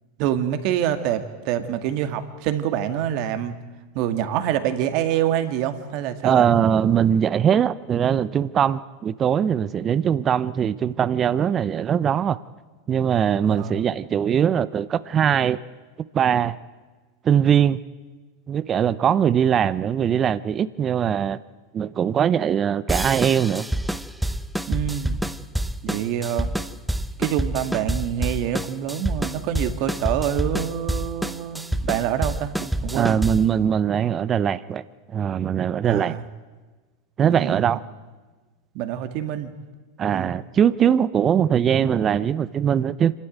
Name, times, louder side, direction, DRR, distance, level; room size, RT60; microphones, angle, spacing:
voice 1, 0.2-3.6 3.9-6.5 13.5-13.8 24.7-25.2 25.8-26.5 27.2-33.2 35.8-36.2 37.2-37.6 38.7-39.5 40.1-40.4, right 10 dB, 55° right, 9 dB, 2.0 m, -26 dB
voice 2, 6.2-12.4 12.9-15.6 16.1-16.6 17.2-17.8 18.5-21.4 21.7-23.7 32.9-34.8 35.1-36.2 37.2-37.8 40.0-43.1, right 8 dB, 30° right, 17 dB, 0.7 m, -21 dB
sound 1, 22.9-33.6, right 1 dB, 5° right, 0.9 m, -27 dB
26.0 x 13.0 x 9.2 m, 1.3 s
hypercardioid pair, 100°, 0 cm